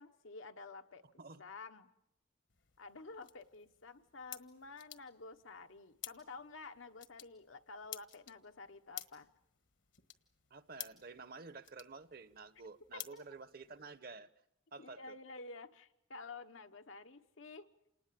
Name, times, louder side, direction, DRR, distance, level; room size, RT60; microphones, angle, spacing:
voice 1, 0.0-1.0 1.4-1.9 2.8-9.3 12.9-13.2 14.8-17.7, left 3 dB, 85° left, 1.2 m, -51 dB
sound 1, 2.5-14.0, left 13 dB, 70° left, 1.4 m, -54 dB
voice 2, 10.5-14.3 14.7-15.2, right 4 dB, 50° right, 0.9 m, -51 dB
27.5 x 19.5 x 7.6 m
head